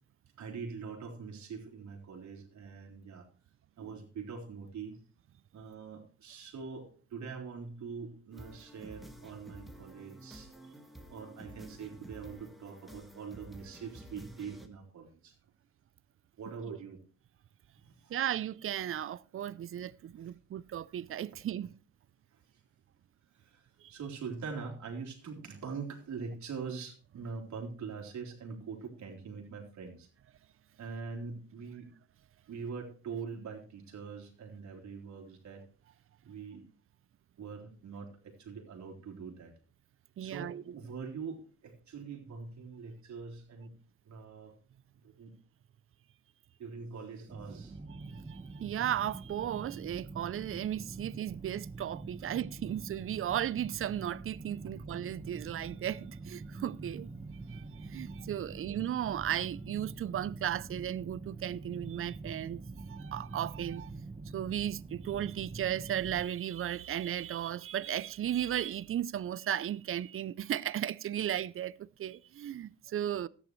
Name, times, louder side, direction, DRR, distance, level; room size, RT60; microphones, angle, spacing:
voice 1, 0.4-3.3 3.8-5.0 5.5-10.5 11.1-15.4 16.4-17.0 17.8-18.2 20.2-20.3 22.3-22.6 23.3-30.1 30.8-31.9 32.5-35.6 36.2-36.6 37.4-39.5 40.2-43.7 44.0-44.6 45.0-45.3 46.6-47.8 52.2-52.3, right 5 dB, 70° right, 3.7 m, -43 dB
sound 1, 8.3-14.7, right 1 dB, ahead, 1.8 m, -51 dB
voice 2, 18.1-21.7 23.8-23.9 40.2-40.6 48.3-57.1 57.5-62.6 62.9-63.9 64.3-71.7 72.0-73.3, right 11 dB, 45° right, 0.5 m, -35 dB
sound 2, 47.3-66.2, right 3 dB, 20° right, 1.0 m, -45 dB
14.0 x 9.8 x 3.2 m
cardioid pair, 90°, 30 cm